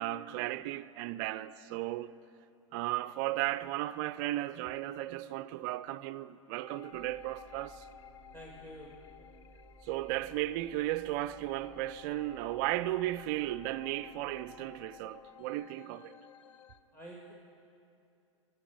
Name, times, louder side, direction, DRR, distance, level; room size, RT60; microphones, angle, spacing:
voice 1, 0.0-2.1 2.7-7.9 9.8-16.2, right 15 dB, 40° right, 0.4 m, -35 dB
sound 1, 6.6-16.8, left 9 dB, 65° left, 0.6 m, -55 dB
sound 2, 6.9-15.6, right 1 dB, 30° left, 1.5 m, -59 dB
voice 2, 8.3-9.1 16.9-17.3, right 1 dB, 15° left, 1.5 m, -49 dB
15.0 x 6.8 x 8.2 m
figure-of-eight pair, 100°, 16 cm